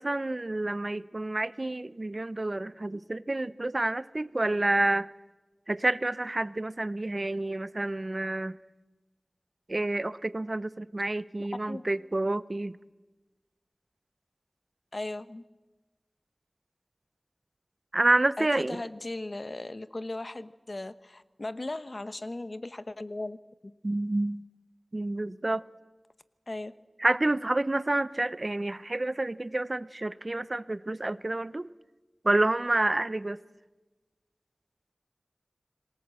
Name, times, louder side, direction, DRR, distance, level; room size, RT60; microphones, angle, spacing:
voice 1, 0.0-5.1 5.7-8.6 9.7-12.8 17.9-18.8 23.8-24.4 24.9-25.6 27.0-31.7 32.2-33.4, right 2 dB, 50° right, 0.7 m, -29 dB
voice 2, 11.4-11.8 14.9-15.4 18.4-23.4 23.6-23.7 26.5-26.7, left 2 dB, 55° left, 1.0 m, -37 dB
26.5 x 19.0 x 7.6 m
wide cardioid pair, 50°, 0 cm